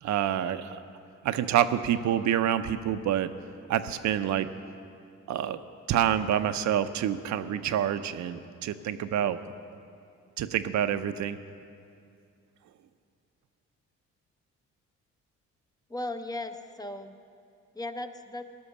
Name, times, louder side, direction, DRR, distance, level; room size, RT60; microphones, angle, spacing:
voice 1, 0.0-0.8 1.2-3.3 3.7-4.5 5.3-5.6 5.9-9.4 10.4-11.4, right 10 dB, 65° right, 10 dB, 0.6 m, -27 dB
voice 2, 15.9-17.2 17.7-18.5, left 2 dB, 10° left, 8 dB, 0.6 m, -36 dB
13.0 x 6.3 x 9.8 m, 2.4 s
cardioid pair, 90°, 30 cm